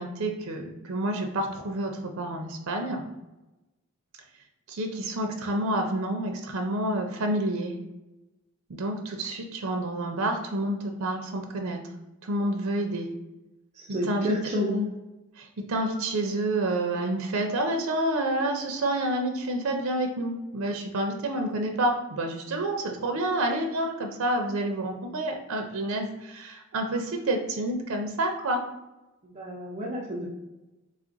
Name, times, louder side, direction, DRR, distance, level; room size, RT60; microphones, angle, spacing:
voice 1, 0.0-3.0 4.7-7.7 8.7-11.8 12.2-13.1 13.9-14.3 15.4-28.6, right 1 dB, 85° right, 4 dB, 0.5 m, -29 dB
voice 2, 13.7-14.9 29.2-30.3, left 1 dB, 30° right, -3 dB, 0.5 m, -30 dB
3.3 x 2.4 x 3.8 m, 1.0 s
head